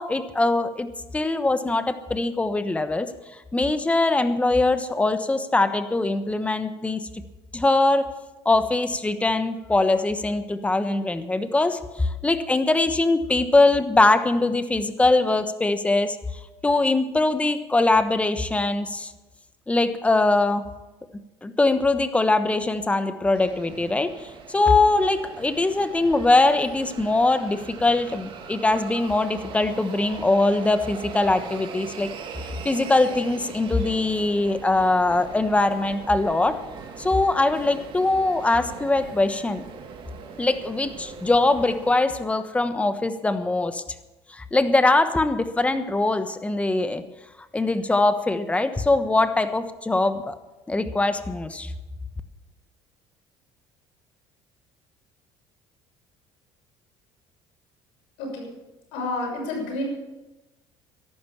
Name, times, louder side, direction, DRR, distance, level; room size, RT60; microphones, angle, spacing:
voice 1, 0.0-7.0 7.5-8.1 8.4-16.2 16.6-19.1 19.7-20.7 21.4-32.1 32.6-36.6 37.0-39.6 40.4-43.8 44.3-47.1 47.5-50.4 50.7-51.7, left 2 dB, 10° left, 10 dB, 1.2 m, -22 dB
sound 1, 23.3-42.0, right 6 dB, 55° right, 2.2 m, -41 dB
voice 2, 58.2-58.5 58.9-59.8, left 2 dB, 85° left, 1 dB, 6.5 m, -29 dB
14.0 x 11.5 x 7.1 m, 1.1 s
cardioid pair, 105°, 10 cm